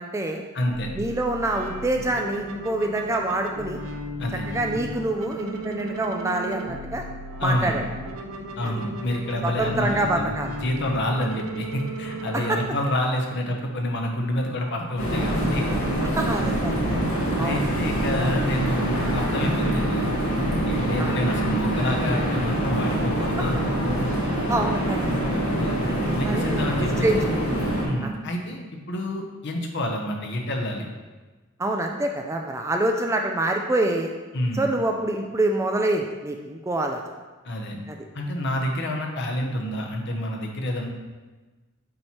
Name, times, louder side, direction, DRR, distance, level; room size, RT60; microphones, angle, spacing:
voice 1, 0.0-0.4 0.9-3.8 4.5-7.0 7.4-7.8 8.6-8.7 9.4-10.5 12.3-12.6 16.2-17.0 17.4-17.7 18.2-18.3 21.0-21.1 24.5-25.0 25.8-26.0 26.2-27.2 28.0-28.2 31.6-34.1 34.5-37.0 37.9-38.0, right 1 dB, 15° right, 3 dB, 0.3 m, -26 dB
voice 2, 0.5-0.9 4.2-4.5 7.4-7.8 8.6-15.7 17.4-20.1 20.6-23.6 24.0-24.1 25.6-25.9 26.1-27.3 27.8-28.6 28.9-30.9 34.3-34.7 37.4-37.8 38.1-40.9, left 1 dB, 55° left, 1 dB, 0.9 m, -28 dB
sound 1, 0.7-12.7, right 1 dB, 75° right, 0.7 m, -35 dB
sound 2, 15.0-27.8, right 1 dB, 75° left, 1.8 m, -25 dB
7.6 x 3.0 x 4.3 m, 1.3 s
head